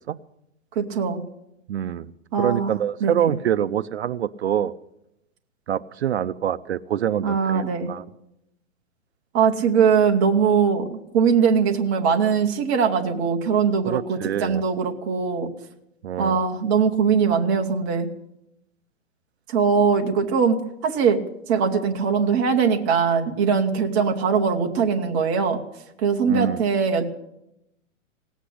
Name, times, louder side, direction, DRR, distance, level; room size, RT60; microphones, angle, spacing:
voice 1, 0.8-1.2 2.3-2.7 3.0-3.3 7.2-7.9 9.3-15.5 16.2-18.1 19.5-21.2 21.5-25.6 26.0-27.1, right 6 dB, 15° right, 2 dB, 0.6 m, -21 dB
voice 2, 1.7-2.1 2.4-4.7 5.7-8.0 13.9-14.6 16.0-16.4 26.3-26.6, right 10 dB, 55° right, 14 dB, 0.5 m, -25 dB
17.5 x 8.2 x 10.0 m, 0.84 s
hypercardioid pair, 165°, 39 cm